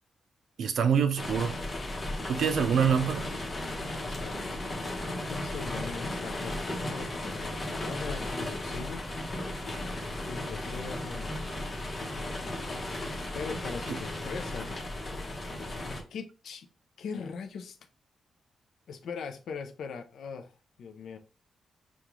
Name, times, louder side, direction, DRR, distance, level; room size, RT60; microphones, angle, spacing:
voice 1, 0.6-1.5 2.3-3.3 13.9-14.0, right 7 dB, 65° right, 0.5 m, -25 dB
sound 1, 1.2-16.0, left 1 dB, 25° left, 0.9 m, -35 dB
voice 2, 3.6-4.6 5.3-9.0 10.2-11.6 13.3-14.8 15.9-16.7 17.0-17.8 18.9-21.2, left 5 dB, 75° left, 0.5 m, -41 dB
5.1 x 2.3 x 3.0 m
wide cardioid pair, 160°, 0 cm